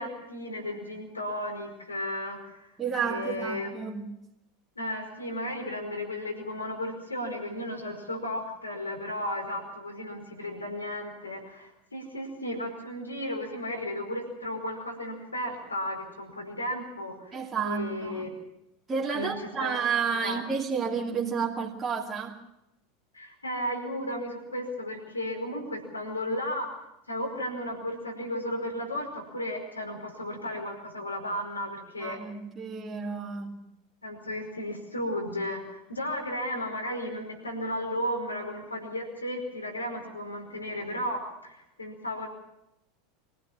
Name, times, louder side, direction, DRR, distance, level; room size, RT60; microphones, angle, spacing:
voice 1, 0.0-2.7 3.0-3.7 4.7-18.3 19.1-19.3 19.6-19.9 20.2-20.4 23.1-26.7 27.1-32.2 34.0-42.3, left 1 dB, 85° left, 5.1 m, -34 dB
voice 2, 2.8-4.1 17.3-18.3 18.9-22.4 32.0-33.6, right 6 dB, 20° right, 2.5 m, -31 dB
24.0 x 16.0 x 7.3 m
figure-of-eight pair, 85°, 0 cm